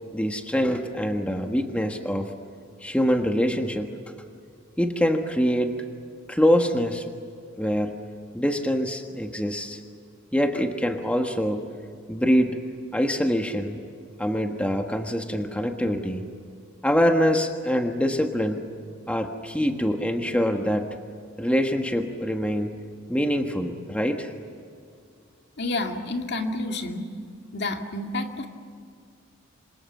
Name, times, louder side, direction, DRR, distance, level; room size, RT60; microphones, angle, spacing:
voice 1, 0.1-2.3 2.8-4.0 4.8-5.8 6.3-7.1 7.6-8.0 8.3-9.8 10.3-11.7 12.1-12.6 12.9-13.8 14.2-16.2 16.8-18.7 19.1-21.0 21.4-22.8 23.1-24.3, equal, 5° left, 4 dB, 1.5 m, -24 dB
voice 2, 25.6-27.1 27.5-28.5, left 2 dB, 60° left, 3 dB, 2.4 m, -29 dB
27.0 x 26.5 x 7.3 m, 2.2 s
head